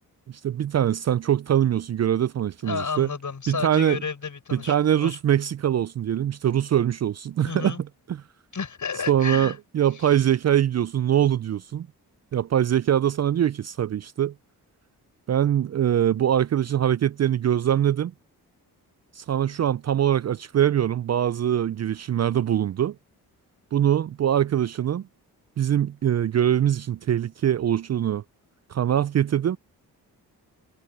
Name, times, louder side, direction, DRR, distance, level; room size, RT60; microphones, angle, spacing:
voice 1, 0.3-3.1 3.5-4.0 4.5-7.8 8.1-8.2 9.1-11.9 12.3-14.3 15.3-18.1 19.2-23.0 23.7-25.1 25.6-28.2 28.7-29.6, right 10 dB, 45° right, 0.5 m, -23 dB
voice 2, 2.6-5.2 7.4-7.8 8.5-9.6 10.0-10.1, left 5 dB, 50° left, 7.1 m, -32 dB
supercardioid pair, 50°, 39 cm